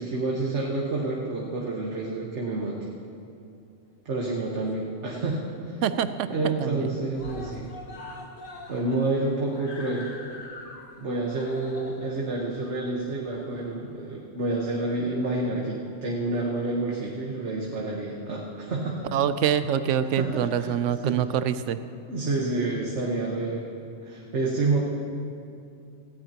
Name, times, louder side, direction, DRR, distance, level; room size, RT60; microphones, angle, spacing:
voice 1, 0.0-2.8 4.0-5.8 6.3-7.7 8.7-10.1 11.0-19.0 20.2-20.7 21.0-21.2 22.1-23.7 24.0-24.8, right 2 dB, 70° right, -3 dB, 1.6 m, -29 dB
Screaming, 4.4-5.2 5.5-5.6 5.9-6.0 6.3-6.8 7.1-13.9 14.8-14.9, left 2 dB, 45° left, 1.3 m, -44 dB
voice 2, 5.8-6.9 19.1-21.8, right 9 dB, 85° right, 12 dB, 0.9 m, -25 dB
17.5 x 15.5 x 2.9 m, 2.6 s
omnidirectional pair, 1.2 m